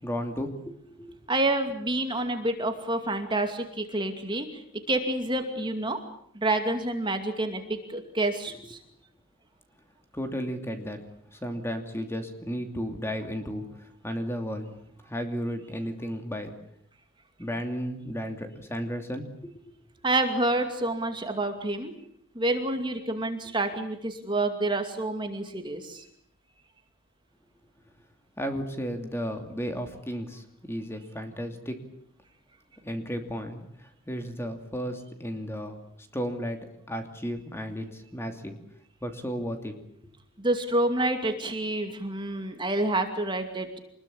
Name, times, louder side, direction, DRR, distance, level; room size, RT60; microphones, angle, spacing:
voice 1, 0.0-1.2 10.1-11.0 11.3-14.8 15.0-16.5 17.4-19.3 28.4-31.8 32.8-35.8 36.1-36.6 36.9-38.6 39.0-39.8, equal, 10° left, 6 dB, 2.7 m, -34 dB
voice 2, 1.3-4.6 4.9-6.0 6.3-8.8 20.0-21.9 22.3-26.1 40.4-43.8, right 2 dB, 20° right, 6 dB, 2.5 m, -28 dB
26.0 x 21.0 x 8.6 m, 0.66 s
head